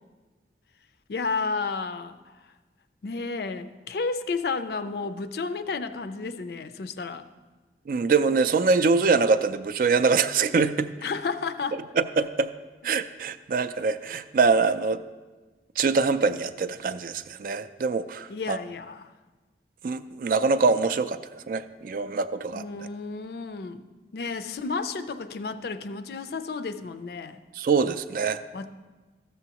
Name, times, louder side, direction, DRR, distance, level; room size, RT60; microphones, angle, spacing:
voice 1, 1.1-2.2 3.0-7.3 11.0-11.8 18.3-19.1 22.5-23.8 24.1-27.4 28.5-28.7, left 4 dB, 60° left, 0.4 m, -32 dB
voice 2, 7.9-10.9 11.7-12.5 12.8-15.0 15.8-18.6 19.8-22.6 27.5-28.4, right 4 dB, 50° right, 0.3 m, -24 dB
13.5 x 7.0 x 2.9 m
head